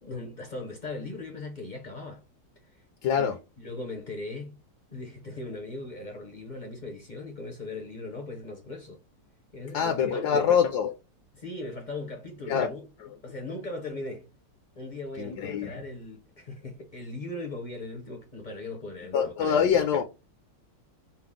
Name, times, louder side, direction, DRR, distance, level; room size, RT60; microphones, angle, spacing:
voice 1, 0.0-2.2 2.7-2.8 3.1-4.6 4.9-9.0 9.5-10.4 11.3-12.9 13.2-14.3 14.8-19.6, left 2 dB, 45° left, 0.6 m, -39 dB
voice 2, 3.0-3.4 9.7-10.9 12.5-12.7 15.2-15.8 19.1-20.0, left 7 dB, 70° left, 1.1 m, -24 dB
5.8 x 2.0 x 3.6 m
omnidirectional pair, 1.9 m